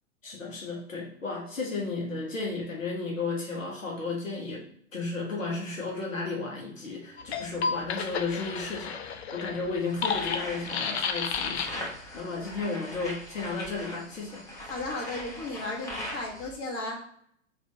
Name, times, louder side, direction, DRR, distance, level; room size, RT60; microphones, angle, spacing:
voice 1, 0.2-4.6 4.9-14.4, left 3 dB, 75° left, -2 dB, 1.0 m, -34 dB
sound 1, 7.2-12.0, left 6 dB, 55° left, 0.5 m, -32 dB
sound 2, 9.8-16.6, left 1 dB, 10° left, 0.5 m, -41 dB
voice 2, 14.6-17.0, left 2 dB, 35° left, -3 dB, 1.4 m, -35 dB
2.8 x 2.6 x 4.3 m, 0.66 s
figure-of-eight pair, 105°, 39 cm